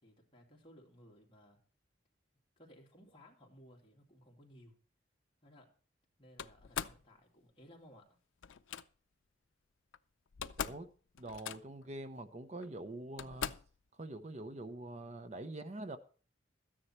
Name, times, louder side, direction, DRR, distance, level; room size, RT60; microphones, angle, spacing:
voice 1, 0.0-1.6 2.6-4.8 5.4-5.7 6.2-8.1, equal, 25° left, 2.5 m, -59 dB
Slam, 6.4-7.0 8.4-8.8 9.9-10.0 10.3-10.9 11.1-11.9 12.6-12.7 13.2-13.8, left 8 dB, 85° left, 0.5 m, -41 dB
voice 2, 10.6-10.9 11.2-13.5 14.0-16.0, right 2 dB, 35° right, 0.6 m, -45 dB
13.0 x 9.9 x 4.4 m
head